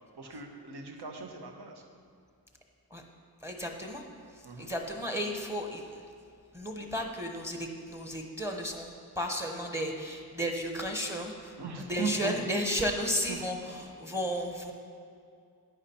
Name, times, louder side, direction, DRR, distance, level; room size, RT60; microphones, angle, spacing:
voice 1, 0.1-1.8 4.4-4.7 11.6-12.4 13.3-13.4, right 5 dB, 80° right, 2 dB, 1.4 m, -37 dB
voice 2, 3.4-4.0 4.3-6.0 6.5-8.9 9.2-14.7, equal, 5° right, 2 dB, 1.0 m, -34 dB
11.0 x 9.1 x 4.4 m, 2.4 s
wide cardioid pair, 115°, 39 cm